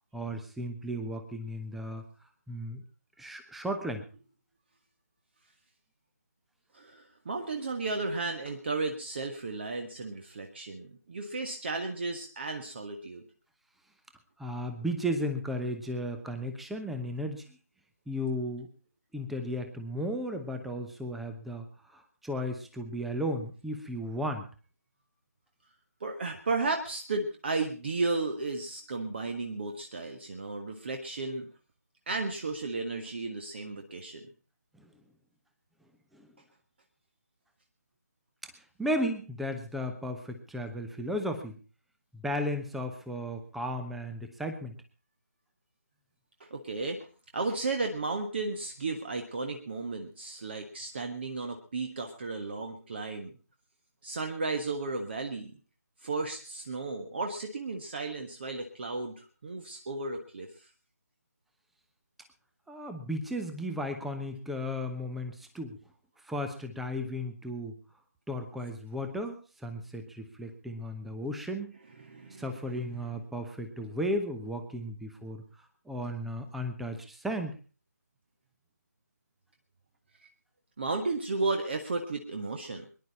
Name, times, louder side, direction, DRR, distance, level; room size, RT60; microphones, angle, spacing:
voice 1, 0.1-2.0 2.5-2.8 3.2-4.1 14.4-17.6 18.1-18.7 19.1-21.6 21.9-24.5 34.8-34.9 36.1-36.3 38.4-41.6 42.1-44.7 62.7-65.8 66.2-67.8 68.3-71.7 72.4-75.4 75.9-77.6, equal, ahead, 6 dB, 0.9 m, -35 dB
voice 2, 6.7-13.2 26.0-31.5 32.1-34.2 46.4-47.1 47.3-53.4 54.0-55.5 56.0-60.7 72.0-72.5 72.9-73.0 80.8-82.9, right 3 dB, 35° right, 4 dB, 1.5 m, -34 dB
23.0 x 11.0 x 4.1 m, 0.37 s
figure-of-eight pair, 155°, 10 cm